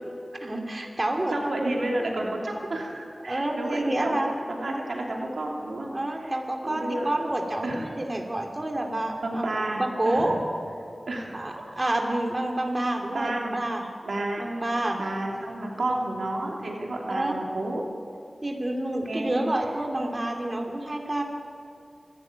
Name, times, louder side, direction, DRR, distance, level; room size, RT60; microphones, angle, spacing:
voice 1, 0.4-1.3 1.6-1.8 3.3-4.3 4.7-4.8 5.9-9.4 9.7-10.4 11.3-13.9 14.4-15.0 15.8-16.1 17.1-17.4 18.4-21.2, right 1 dB, 35° right, 2 dB, 2.8 m, -28 dB
voice 2, 1.0-5.9 6.2-6.4 6.6-7.1 7.6-7.8 9.2-10.3 11.1-11.4 13.1-13.6 14.0-14.5 15.0-17.8 19.1-19.5, right 1 dB, 85° right, -1 dB, 2.9 m, -31 dB
25.5 x 12.5 x 9.6 m, 2.4 s
wide cardioid pair, 55°, 0 cm